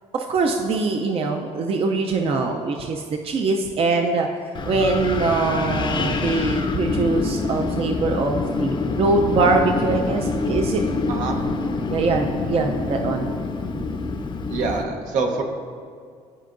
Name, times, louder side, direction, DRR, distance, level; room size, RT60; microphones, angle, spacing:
voice 1, 0.1-4.3 4.7-10.8 11.9-13.4, right 3 dB, 45° right, 3 dB, 0.5 m, -23 dB
Wind, 4.5-14.8, left 3 dB, 35° left, 0.6 m, -26 dB
voice 2, 11.1-11.4 14.5-15.4, right 4 dB, 80° right, 2 dB, 0.9 m, -25 dB
13.0 x 4.6 x 2.6 m, 2.2 s
cardioid pair, 95°, 13 cm